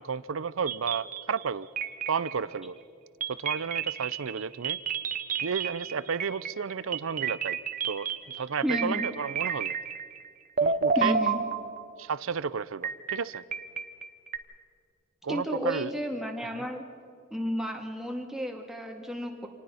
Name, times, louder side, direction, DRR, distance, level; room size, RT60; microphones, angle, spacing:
voice 1, 0.0-1.7 2.1-2.8 3.3-4.8 5.4-7.6 7.8-8.1 8.4-9.7 10.6-11.2 12.0-13.4 15.2-15.9 16.5-16.6, right 6 dB, 70° right, 19 dB, 0.5 m, -32 dB
sound 1, 0.7-1.4 1.8-2.6 3.2-10.3 10.6-12.1 12.8-14.4, right 6 dB, 40° right, 0.9 m, -31 dB
voice 2, 8.6-9.1 11.0-11.4 15.3-16.8 17.3-19.5, equal, ahead, 2 dB, 2.0 m, -32 dB
26.5 x 19.0 x 5.7 m, 2.4 s
head